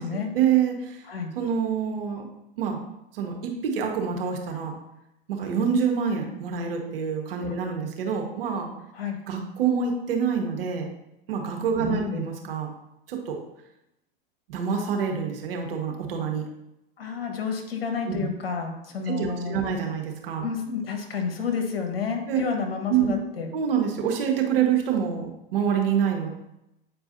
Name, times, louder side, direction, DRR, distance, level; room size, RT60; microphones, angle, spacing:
voice 1, 0.0-1.0 1.3-2.3 2.6-2.8 3.1-4.7 5.3-8.7 9.3-10.9 11.3-12.7 13.1-13.4 14.5-16.4 18.1-18.3 19.1-20.4 22.3-22.4 22.9-23.1 23.5-26.3, right 7 dB, 75° right, 2 dB, 1.5 m, -26 dB
voice 2, 11.8-12.2 17.0-19.7 20.4-23.5, left 6 dB, 80° left, 4 dB, 1.4 m, -30 dB
8.5 x 4.6 x 2.7 m, 0.87 s
hypercardioid pair, 100°, 29 cm